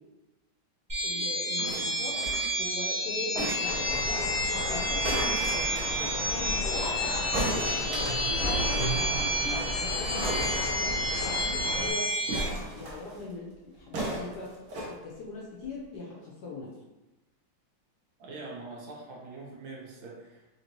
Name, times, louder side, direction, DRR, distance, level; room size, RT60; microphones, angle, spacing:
sound 1, 0.9-12.4, equal, 20° right, 0.6 m, -30 dB
voice 1, 1.0-2.2 2.6-6.9 7.4-8.2 8.6-14.5 14.9-16.7, left 3 dB, 70° left, -3 dB, 1.0 m, -40 dB
sound 2, 1.6-2.6 3.3-4.1 5.0-6.1 7.3-9.0 9.3-9.4 9.6-9.7 10.2-11.3 12.3-13.2 13.9-14.9 15.6-15.7, right 1 dB, 55° right, 1.1 m, -35 dB
sound 3, 3.6-11.9, left 1 dB, 40° left, 0.9 m, -34 dB
voice 2, 18.2-20.5, right 3 dB, 75° right, -3 dB, 1.7 m, -43 dB
4.3 x 2.9 x 3.0 m, 1.0 s
omnidirectional pair, 2.3 m